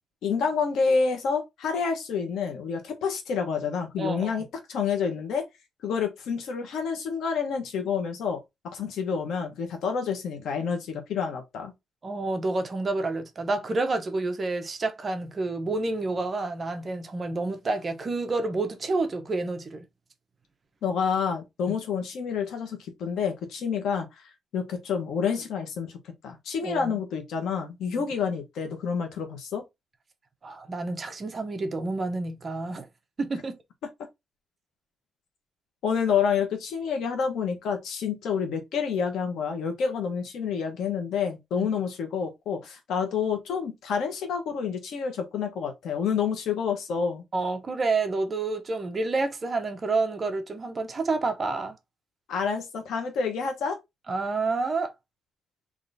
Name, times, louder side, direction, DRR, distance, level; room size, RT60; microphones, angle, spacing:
voice 1, 0.2-5.4 5.8-8.4 8.7-11.7 20.8-24.1 24.5-26.0 26.2-29.6 35.8-47.2 52.3-53.8, left 6 dB, 85° left, 1.3 m, -28 dB
voice 2, 4.0-4.4 12.0-19.8 21.7-21.8 26.6-26.9 30.4-32.9 33.2-33.6 41.6-41.7 47.3-51.8 54.1-54.9, right 3 dB, 30° right, 0.8 m, -29 dB
3.8 x 3.0 x 4.0 m
cardioid pair, 145°, 0 cm